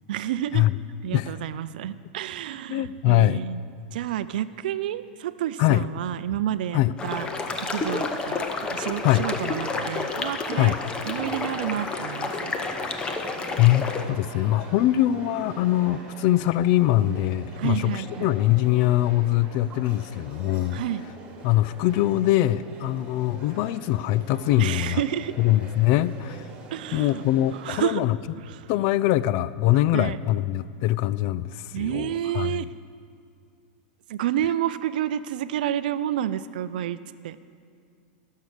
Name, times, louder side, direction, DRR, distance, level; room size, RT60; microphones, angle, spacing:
voice 1, 0.1-0.7 1.0-3.6 3.9-7.3 7.6-10.8 11.1-12.5 17.6-18.3 20.7-21.0 24.6-25.3 26.7-27.2 27.6-28.0 28.4-28.7 29.9-30.2 31.7-32.7 34.1-37.0 37.2-37.4, right 11 dB, 70° right, 14 dB, 0.5 m, -29 dB
voice 2, 2.7-3.4 5.6-5.9 6.7-6.9 9.0-9.3 10.6-10.8 13.6-20.8 21.4-25.0 25.4-26.5 26.9-28.2 28.7-32.7, left 15 dB, 50° left, 17 dB, 0.3 m, -23 dB
sound 1, 7.0-14.0, left 3 dB, 20° left, 0.8 m, -30 dB
sound 2, 11.2-27.7, right 3 dB, 25° right, 1.9 m, -44 dB
14.0 x 6.5 x 6.6 m, 2.3 s
supercardioid pair, 130°, 5 cm